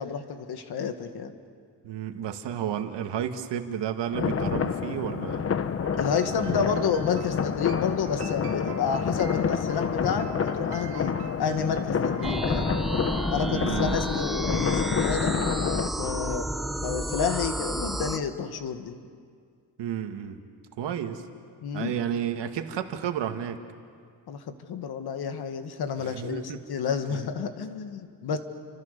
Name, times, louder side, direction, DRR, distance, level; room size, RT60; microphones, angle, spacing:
voice 1, 0.0-1.3 6.0-12.7 13.3-15.4 16.0-16.4 16.8-19.0 21.6-22.0 24.3-24.4 24.7-28.4, left 6 dB, 65° left, 7 dB, 1.9 m, -30 dB
voice 2, 1.8-5.5 6.4-6.7 13.5-14.0 19.8-20.4 20.8-21.2 21.7-23.6 26.0-26.6 27.1-27.2, right 9 dB, 80° right, 6 dB, 1.9 m, -32 dB
sound 1, 4.1-15.9, left 6 dB, 35° left, 0.9 m, -28 dB
sound 2, 5.8-13.8, right 8 dB, 65° right, 2.0 m, -44 dB
sound 3, 12.2-18.2, equal, ahead, 0.8 m, -31 dB
29.5 x 26.0 x 6.8 m, 2.1 s
cardioid pair, 160°, 41 cm